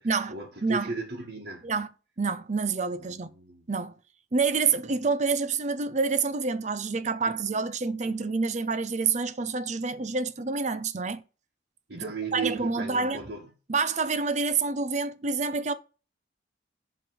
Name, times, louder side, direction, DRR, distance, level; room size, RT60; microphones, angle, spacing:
voice 1, 0.0-1.7 3.1-3.7 8.0-8.2 11.9-13.5, right 4 dB, 65° right, 1.4 m, -36 dB
voice 2, 2.2-3.3 3.7-3.9 4.3-11.2 11.9-13.2 13.7-15.7, right 4 dB, 35° right, 0.6 m, -27 dB
7.6 x 3.3 x 6.2 m
head